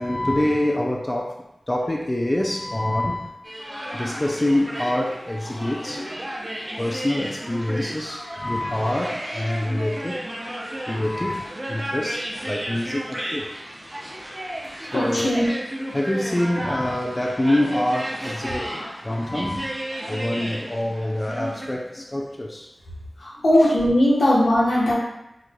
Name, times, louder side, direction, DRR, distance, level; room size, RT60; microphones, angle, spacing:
voice 1, 0.0-1.4 1.7-3.4 3.6-6.2 6.8-10.2 10.9-13.5 14.8-15.5 15.9-22.7 23.6-23.7 24.7-24.9, left 1 dB, 25° left, 0 dB, 0.3 m, -26 dB
sound 1, 3.4-21.7, right 1 dB, 25° right, 0.6 m, -33 dB
voice 2, 14.9-15.5 23.2-24.9, left 1 dB, 80° left, -7 dB, 1.1 m, -19 dB
4.5 x 2.4 x 2.2 m, 0.85 s
wide cardioid pair, 55°, 0 cm